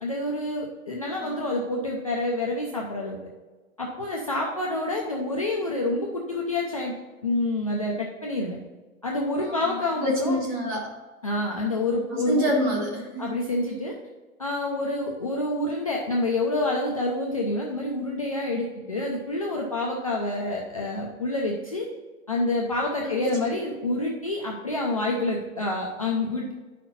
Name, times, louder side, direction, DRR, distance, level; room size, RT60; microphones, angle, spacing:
voice 1, 0.0-3.2 3.8-6.9 7.2-8.6 9.0-10.4 11.2-12.5 13.2-13.9 14.4-21.8 22.3-26.5, left 2 dB, 25° left, -2 dB, 0.5 m, -27 dB
voice 2, 9.4-10.9 12.1-13.3 23.0-23.4, equal, 15° right, -1 dB, 1.2 m, -27 dB
9.0 x 5.9 x 4.1 m, 1.3 s
hypercardioid pair, 175°, 41 cm